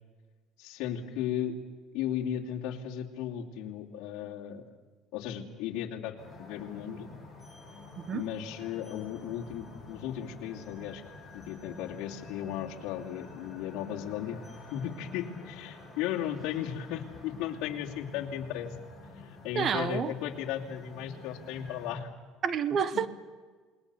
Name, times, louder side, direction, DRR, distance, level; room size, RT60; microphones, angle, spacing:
voice 1, 0.6-1.5 1.9-4.6 5.1-7.1 8.1-11.0 11.3-14.4 14.7-18.7 19.1-22.1 22.9-23.1, left 10 dB, 70° left, 2.7 m, -36 dB
sound 1, 6.2-21.9, left 3 dB, 5° right, 6.6 m, -48 dB
voice 2, 19.5-20.1 22.4-23.1, right 7 dB, 35° right, 1.1 m, -29 dB
28.5 x 20.0 x 7.1 m
cardioid pair, 155°, 0 cm